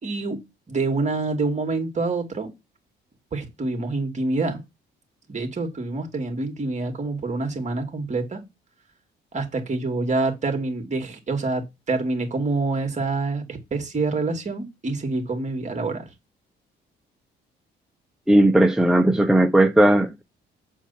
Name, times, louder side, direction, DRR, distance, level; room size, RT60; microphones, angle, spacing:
voice 1, 0.0-2.5 3.3-4.6 5.3-8.4 9.3-16.1, right 3 dB, 35° right, 2.6 m, -26 dB
voice 2, 18.3-20.2, right 1 dB, 5° right, 0.7 m, -17 dB
8.1 x 4.5 x 5.9 m
cardioid pair, 90°, 20 cm